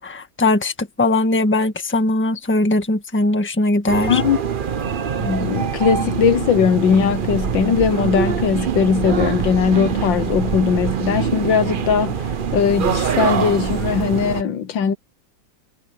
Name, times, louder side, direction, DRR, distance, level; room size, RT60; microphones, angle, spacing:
voice 1, 0.0-4.2, left 2 dB, 5° left, 1.3 m, -20 dB
sound 1, 3.9-14.4, right 7 dB, 80° right, 0.4 m, -24 dB
voice 2, 4.1-4.4 5.2-12.3 12.5-14.9, left 7 dB, 75° left, 1.7 m, -19 dB
omnidirectional pair, 2.1 m